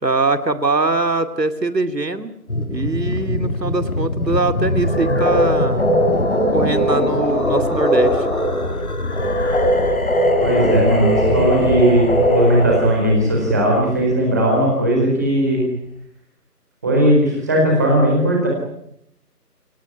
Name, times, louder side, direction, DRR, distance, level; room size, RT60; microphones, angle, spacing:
voice 1, 0.0-2.3 2.7-5.9 6.3-8.3, right 3 dB, 85° right, 10 dB, 2.5 m, -22 dB
sound 1, 2.5-15.2, left 1 dB, 60° left, 3.5 m, -25 dB
sound 2, 4.8-13.2, equal, 45° left, 4.0 m, -20 dB
voice 2, 10.4-15.6 16.8-18.5, right 1 dB, 10° right, -1 dB, 4.2 m, -17 dB
27.5 x 17.5 x 9.9 m, 0.76 s
figure-of-eight pair, 175°, 48 cm